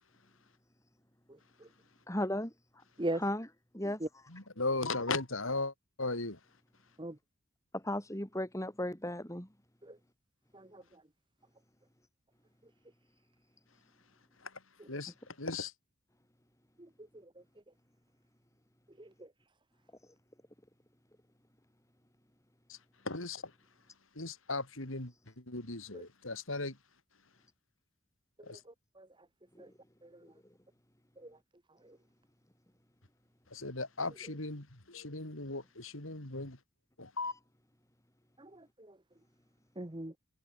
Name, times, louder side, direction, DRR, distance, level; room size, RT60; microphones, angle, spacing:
voice 1, 2.1-2.5 3.1-4.3 7.7-9.5 29.5-29.7 30.2-30.5 37.2-37.4, left 1 dB, 15° left, 4.1 m, -37 dB
voice 2, 4.3-6.4 14.4-15.7 22.7-22.8 23.0-23.5 24.1-26.8 28.4-28.6 33.5-36.6 37.0-37.3, left 3 dB, 70° left, 4.0 m, -37 dB
voice 3, 38.4-38.9 39.8-40.1, right 1 dB, 20° right, 1.2 m, -39 dB
head